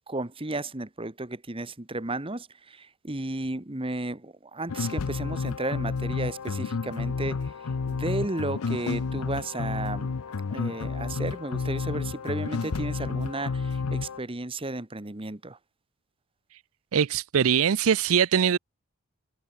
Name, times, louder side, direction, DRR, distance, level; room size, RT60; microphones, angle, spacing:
voice 1, 0.1-10.1 10.5-15.6, right 2 dB, 25° right, 1.4 m, -34 dB
sound 1, 4.7-14.2, left 4 dB, 85° left, 0.6 m, -31 dB
voice 2, 16.9-18.6, right 7 dB, 70° right, 0.5 m, -22 dB
head